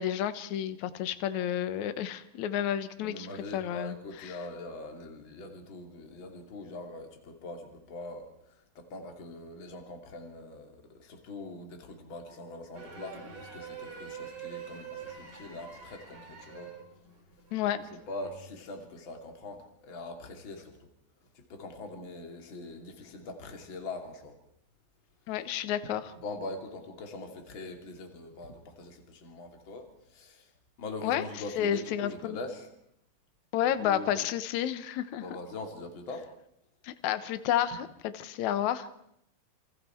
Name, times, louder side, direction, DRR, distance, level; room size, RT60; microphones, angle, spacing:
voice 1, 0.0-3.3 3.5-4.0 17.5-17.8 25.3-26.0 31.0-31.2 31.6-32.4 33.5-35.2 36.8-37.9 38.2-38.9, left 10 dB, 65° left, 12 dB, 2.2 m, -30 dB
voice 2, 3.0-16.7 17.8-20.9 21.3-24.4 26.1-30.5 30.8-32.7 33.6-34.1 35.2-36.3, left 2 dB, 35° left, 4 dB, 3.2 m, -43 dB
sound 1, 12.7-18.4, right 6 dB, 50° right, 4.8 m, -45 dB
28.0 x 26.0 x 4.6 m, 0.76 s
omnidirectional pair, 4.2 m